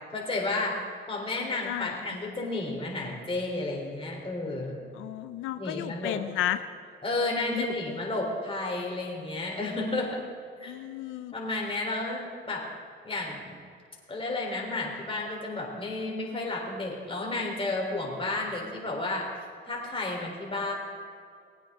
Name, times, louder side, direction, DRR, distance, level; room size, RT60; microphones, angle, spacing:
voice 1, 0.1-0.8 1.1-4.8 5.6-6.2 7.0-10.2 10.6-10.7 11.3-12.7 13.0-13.6 14.1-19.3 19.6-20.7, left 2 dB, 25° left, -1 dB, 3.6 m, -32 dB
voice 2, 1.6-2.0 5.0-6.6 7.5-7.7 10.6-11.3, left 13 dB, 90° left, 10 dB, 0.5 m, -32 dB
20.0 x 9.0 x 3.7 m, 2.3 s
cardioid pair, 90°, 20 cm